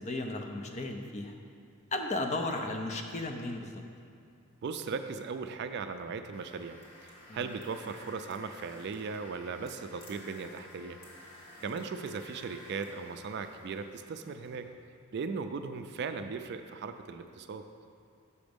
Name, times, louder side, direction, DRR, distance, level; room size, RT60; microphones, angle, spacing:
voice 1, 0.0-1.3 1.9-3.8 7.3-7.4, left 2 dB, 30° left, 4 dB, 0.5 m, -35 dB
voice 2, 4.6-11.0 11.6-14.7 15.1-17.6, right 5 dB, 50° right, 8 dB, 0.3 m, -38 dB
sound 1, 6.3-14.6, left 1 dB, 80° left, 1.5 m, -53 dB
6.9 x 5.2 x 5.1 m, 2.4 s
head